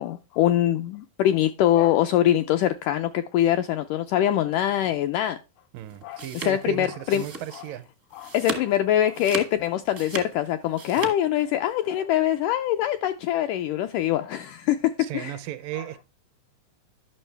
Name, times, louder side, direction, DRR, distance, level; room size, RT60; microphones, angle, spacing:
voice 1, 0.0-5.4 6.0-7.2 7.5-7.6 8.1-15.4 15.8-15.9, left 12 dB, 85° left, 1.8 m, -24 dB
voice 2, 5.7-7.9 11.0-11.1 15.0-16.0, right 13 dB, 80° right, 2.1 m, -35 dB
sound 1, 5.9-7.8 8.1-8.7 9.1-11.1, right 4 dB, 60° right, 0.8 m, -36 dB
11.0 x 6.2 x 3.3 m
omnidirectional pair, 4.2 m